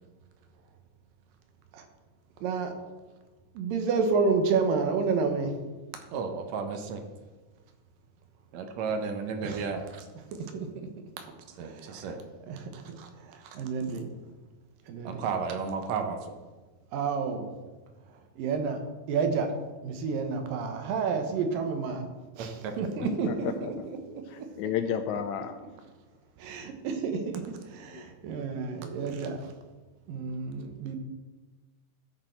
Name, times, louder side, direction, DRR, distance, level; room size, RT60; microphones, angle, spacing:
voice 1, 2.4-2.7 3.5-5.5 9.4-9.6 10.4-10.9 11.6-12.0 12.5-14.1 14.9-15.2 16.9-17.5 18.4-18.8 19.1-19.5 19.8-22.1 22.4-23.5 24.4-24.5 26.4-29.4 30.1-31.0, right 5 dB, 90° right, 6 dB, 2.8 m, -30 dB
voice 2, 6.1-7.0 8.5-9.8 11.6-12.2 15.0-16.3 22.4-22.7, right 5 dB, 70° right, 6 dB, 1.8 m, -33 dB
voice 3, 22.8-23.9 24.3-25.6 27.9-28.0, left 9 dB, 85° left, 8 dB, 1.7 m, -33 dB
13.5 x 6.5 x 4.5 m, 1.3 s
omnidirectional pair, 3.9 m